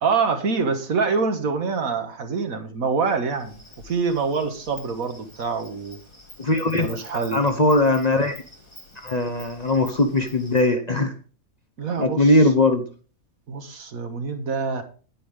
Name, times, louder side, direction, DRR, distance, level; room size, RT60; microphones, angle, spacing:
voice 1, 0.0-3.6 3.8-6.0 6.7-7.4 11.8-12.5 13.5-14.8, right 5 dB, 70° right, 7 dB, 1.8 m, -25 dB
Insect, 3.3-10.7, left 1 dB, 20° left, 2.5 m, -47 dB
voice 2, 6.4-7.0 7.3-8.4 9.0-11.1 12.0-12.8, left 2 dB, 35° left, 6 dB, 0.9 m, -20 dB
10.0 x 9.6 x 3.5 m, 0.38 s
omnidirectional pair, 1.5 m